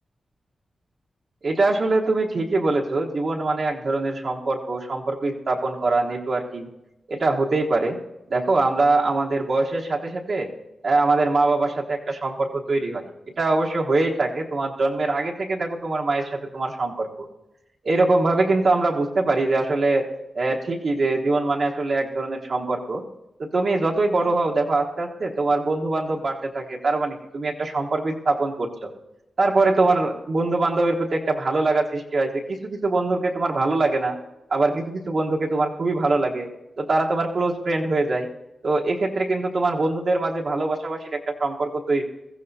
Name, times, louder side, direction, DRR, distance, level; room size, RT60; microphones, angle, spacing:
voice 1, 1.4-6.7 7.1-8.0 8.3-10.5 10.8-13.1 13.4-17.3 17.8-20.1 20.3-23.0 23.4-28.9 29.4-34.2 34.5-36.5 36.8-38.3 38.6-42.0, right 2 dB, 55° right, -1 dB, 1.2 m, -23 dB
21.0 x 15.0 x 2.8 m, 0.95 s
wide cardioid pair, 130°, 0 cm